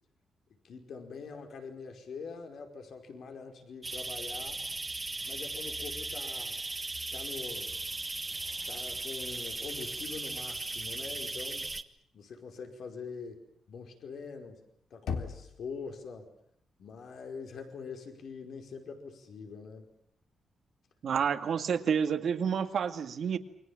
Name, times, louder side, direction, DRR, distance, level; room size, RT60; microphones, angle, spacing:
voice 1, 0.6-4.6 5.2-6.6 7.1-7.7 8.6-11.7 12.1-13.4 13.7-14.6 14.9-16.3 16.8-19.9, left 5 dB, 65° left, 5 dB, 5.1 m, -44 dB
sound 1, 3.8-11.8, right 2 dB, 20° right, 1.3 m, -37 dB
Knock, 15.1-16.0, left 6 dB, 80° left, 3.4 m, -37 dB
voice 2, 21.0-23.4, right 7 dB, 60° right, 7 dB, 2.1 m, -29 dB
29.0 x 23.5 x 7.4 m, 0.70 s
cardioid pair, 120°, 0 cm